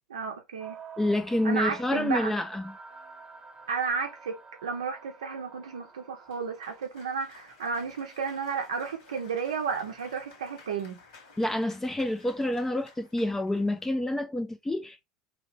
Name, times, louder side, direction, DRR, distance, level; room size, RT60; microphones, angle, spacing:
voice 1, 0.1-0.8 1.4-2.3 3.7-11.0, right 5 dB, 75° right, 0.5 m, -32 dB
sound 1, 0.6-6.9, right 5 dB, 25° right, 1.0 m, -49 dB
voice 2, 1.0-2.7 11.4-15.0, left 1 dB, 10° left, 0.3 m, -28 dB
Cheering / Applause, 6.3-14.0, left 4 dB, 65° left, 1.5 m, -55 dB
2.8 x 2.8 x 3.1 m
figure-of-eight pair, 70°, 3 cm